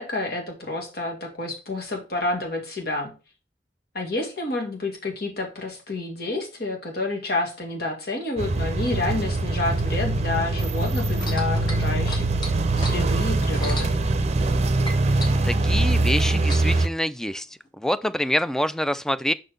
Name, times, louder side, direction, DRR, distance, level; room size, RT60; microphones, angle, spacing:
voice 1, 0.0-3.1 3.9-12.3 12.7-13.9, left 2 dB, 60° left, 2.2 m, -29 dB
sound 1, 8.4-16.9, right 2 dB, 40° right, 0.6 m, -23 dB
sound 2, 11.1-14.6 14.8-16.9 17.7-17.8, left 1 dB, 25° left, 1.5 m, -36 dB
voice 2, 15.5-17.5 17.8-19.3, equal, 5° left, 0.3 m, -26 dB
5.9 x 4.4 x 5.1 m
head